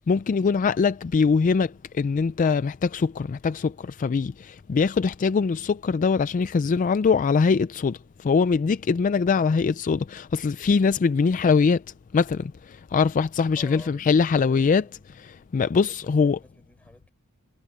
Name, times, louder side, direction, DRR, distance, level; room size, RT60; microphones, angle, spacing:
voice 1, 0.1-11.8 12.1-14.8 15.2-16.4, left 5 dB, 35° left, 0.3 m, -22 dB
voice 2, 13.5-15.1 15.6-17.1, left 1 dB, 5° left, 4.2 m, -50 dB
head